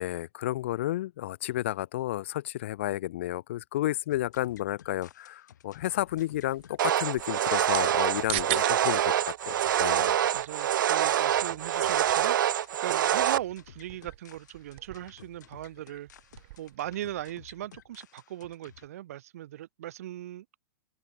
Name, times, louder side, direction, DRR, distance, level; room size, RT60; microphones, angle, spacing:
voice 1, 0.0-9.1 9.4-10.2, left 14 dB, 40° left, 0.3 m, -32 dB
sound 1, 4.1-18.9, left 10 dB, 65° left, 6.2 m, -54 dB
sound 2, 6.1-16.8, right 24 dB, 35° right, 2.8 m, -42 dB
sound 3, 6.8-13.4, right 11 dB, 85° right, 0.4 m, -26 dB
voice 2, 10.3-16.1 16.6-20.6, right 13 dB, 50° right, 1.5 m, -39 dB
open air
supercardioid pair, 175°, 10 cm